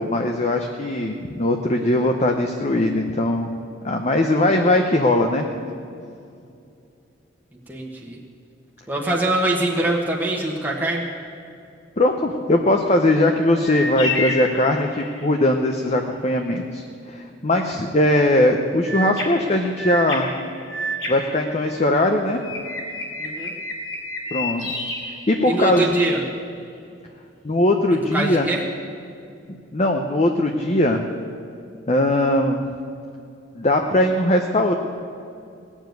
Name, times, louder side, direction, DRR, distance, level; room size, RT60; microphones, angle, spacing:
voice 1, 0.0-3.5 3.8-5.5 12.0-20.3 21.1-22.4 24.3-24.8 25.3-25.9 27.4-28.5 29.7-31.0 31.9-32.6 33.6-34.7, left 1 dB, 35° left, 3 dB, 0.8 m, -20 dB
voice 2, 7.7-8.2 8.9-11.1 23.2-23.5 25.4-26.2 28.1-28.6, right 2 dB, 10° right, -3 dB, 1.3 m, -23 dB
sound 1, 13.6-15.4 18.8-22.0 22.4-25.9, left 1 dB, 90° left, 2.9 m, -30 dB
18.0 x 7.3 x 9.2 m, 2.5 s
head